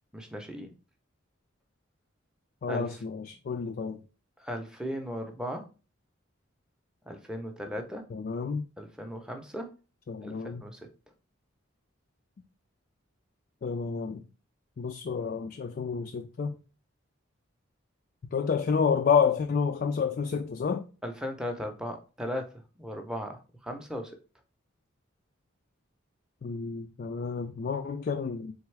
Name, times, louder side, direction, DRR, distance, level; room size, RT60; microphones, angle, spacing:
voice 1, 0.1-0.7 2.7-3.0 4.4-5.6 7.1-8.0 8.8-9.7 10.2-10.9 21.0-24.2, equal, 5° right, 0.6 m, -37 dB
voice 2, 2.6-4.0 8.1-8.6 10.1-10.6 13.6-14.2 14.8-16.6 18.3-20.8 26.4-28.5, left 6 dB, 45° left, 0.3 m, -29 dB
3.9 x 3.4 x 3.2 m
head